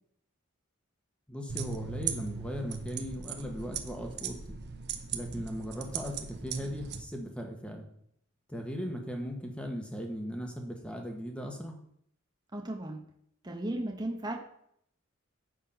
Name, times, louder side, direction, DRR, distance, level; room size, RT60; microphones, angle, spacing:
voice 1, 1.3-4.4 5.1-7.8 8.5-11.7, equal, 5° left, 2 dB, 1.3 m, -38 dB
sound 1, 1.5-7.0, right 6 dB, 55° right, 0.9 m, -38 dB
voice 2, 12.5-13.0 13.4-14.4, right 1 dB, 20° right, 3 dB, 1.0 m, -35 dB
7.6 x 5.9 x 5.8 m, 0.70 s
head